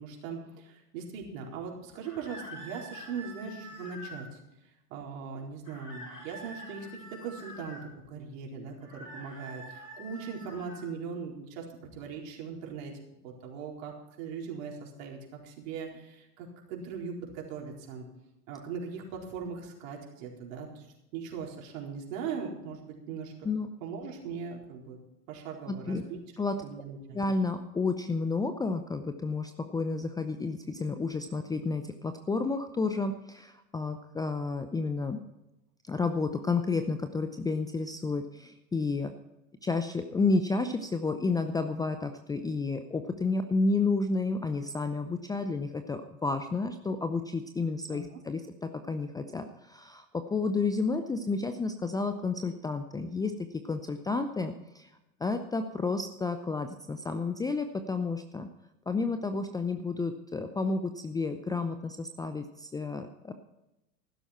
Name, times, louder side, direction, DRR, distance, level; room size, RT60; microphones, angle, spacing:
voice 1, 0.0-4.4 4.9-7.8 8.1-11.6 11.9-12.9 13.2-15.2 15.4-18.1 18.5-20.9 21.1-23.5 23.8-25.0 25.3-26.2 26.6-27.2 47.9-48.2, right 6 dB, 55° right, 0 dB, 4.4 m, -40 dB
sound 1, 2.0-4.3 5.7-7.9 8.8-10.9, equal, 90° left, 4.4 m, -46 dB
voice 2, 25.7-26.0 26.4-26.6 27.1-35.2 35.8-39.1 39.6-50.0 50.3-54.9 55.2-58.5 58.9-63.3, left 3 dB, 10° left, 8 dB, 0.6 m, -31 dB
15.0 x 12.5 x 4.4 m, 0.92 s
figure-of-eight pair, 95°, 47 cm